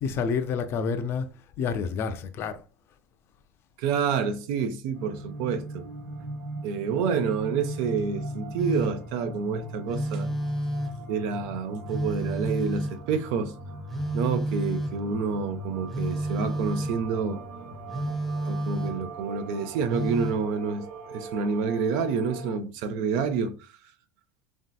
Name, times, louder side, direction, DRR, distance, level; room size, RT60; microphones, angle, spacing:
voice 1, 0.0-1.3 1.6-2.6, left 6 dB, 45° left, 0.4 m, -28 dB
voice 2, 3.8-5.8 6.6-10.3 11.1-13.5 14.1-17.4 18.4-20.8 21.1-23.5, right 5 dB, 65° right, 0.4 m, -28 dB
sound 1, 4.9-22.6, right 1 dB, 90° right, 1.0 m, -39 dB
Telephone, 8.6-9.1 9.9-11.1 11.9-13.1 13.9-15.1 15.9-17.0 17.9-19.1 19.9-20.5, right 1 dB, ahead, 0.7 m, -31 dB
3.1 x 2.7 x 2.3 m
supercardioid pair, 105°, 6 cm